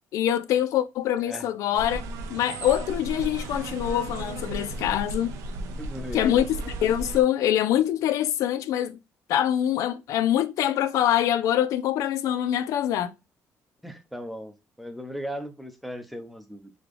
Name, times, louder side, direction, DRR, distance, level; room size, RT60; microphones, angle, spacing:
voice 1, 0.1-2.0 2.3-5.3 6.1-9.0 9.3-13.1, left 11 dB, 75° left, 0.5 m, -24 dB
sound 1, 1.7-7.2, right 2 dB, 90° right, 0.7 m, -34 dB
voice 2, 5.8-6.4 13.8-16.7, equal, ahead, 0.7 m, -37 dB
3.9 x 2.9 x 3.3 m
cardioid pair, 115°, 6 cm